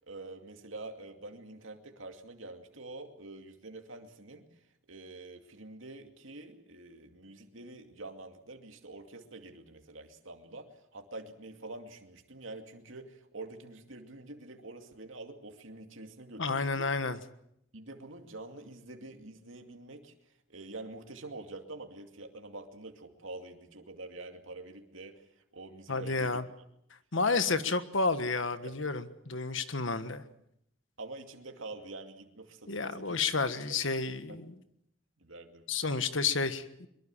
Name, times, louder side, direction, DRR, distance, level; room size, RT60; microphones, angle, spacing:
voice 1, 0.1-4.4 4.9-16.9 17.7-20.1 20.5-25.3 25.5-26.4 27.2-27.6 28.6-28.7 31.0-33.2 33.7-33.8 35.2-35.6, right 2 dB, 70° right, 4 dB, 2.5 m, -46 dB
voice 2, 16.4-17.2 25.9-26.4 27.1-30.2 32.7-34.5 35.7-36.9, left 4 dB, 65° left, 11 dB, 1.5 m, -31 dB
23.0 x 22.5 x 7.3 m, 0.75 s
head